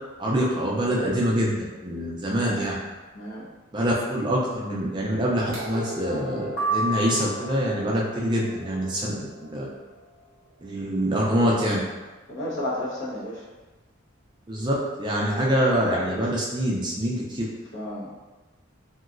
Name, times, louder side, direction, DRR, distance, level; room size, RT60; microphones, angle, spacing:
voice 1, 0.2-2.8 3.7-9.7 10.6-11.8 14.5-17.5, equal, 20° right, -4 dB, 0.4 m, -25 dB
voice 2, 2.3-2.7 3.1-3.5 12.3-13.4 17.7-18.1, left 1 dB, 65° left, -7 dB, 0.9 m, -32 dB
sound 1, 5.5-11.4 12.5-12.6, right 1 dB, 45° right, 0.8 m, -41 dB
sound 2, 6.6-7.8, right 2 dB, 85° left, 0.5 m, -28 dB
3.0 x 2.7 x 2.4 m, 1.2 s
head